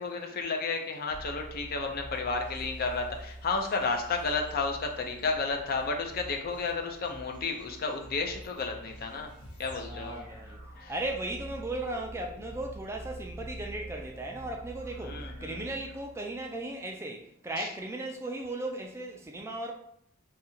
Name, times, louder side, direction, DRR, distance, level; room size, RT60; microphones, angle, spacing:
voice 1, 0.0-9.3 9.6-10.2 10.8-10.9 15.0-15.7 17.6-17.7, left 4 dB, 45° left, 3 dB, 0.5 m, -32 dB
sound 1, 1.1-16.7, right 1 dB, 85° left, 1.2 m, -46 dB
voice 2, 9.9-10.6 10.9-19.7, right 2 dB, 15° right, 1 dB, 0.3 m, -36 dB
2.7 x 2.4 x 4.2 m, 0.70 s
head